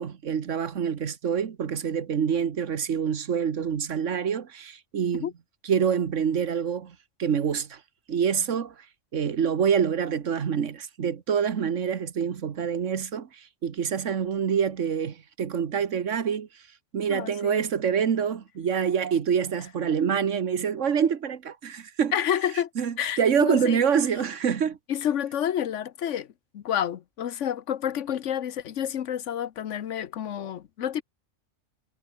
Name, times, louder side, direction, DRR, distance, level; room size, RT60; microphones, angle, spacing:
voice 1, 0.0-5.3 5.6-7.8 8.1-8.7 9.1-16.5 16.9-22.1 22.8-24.8, right 7 dB, 85° right, 1.6 m, -26 dB
voice 2, 17.1-17.6 22.1-22.7 23.0-23.8 24.9-26.3 26.5-31.0, left 10 dB, 75° left, 1.2 m, -29 dB
omnidirectional pair, 1.3 m